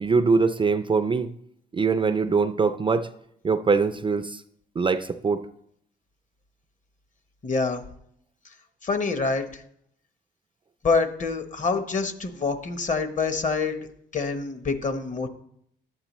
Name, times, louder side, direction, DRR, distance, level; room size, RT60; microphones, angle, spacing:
voice 1, 0.0-1.3 1.7-3.1 3.4-4.4 4.8-5.5, right 4 dB, 25° right, 10 dB, 0.4 m, -23 dB
voice 2, 7.4-7.8 8.8-9.6 10.8-13.8 14.1-15.3, left 4 dB, 40° left, 9 dB, 0.9 m, -26 dB
11.5 x 8.1 x 3.0 m, 0.71 s
cardioid pair, 90°, 20 cm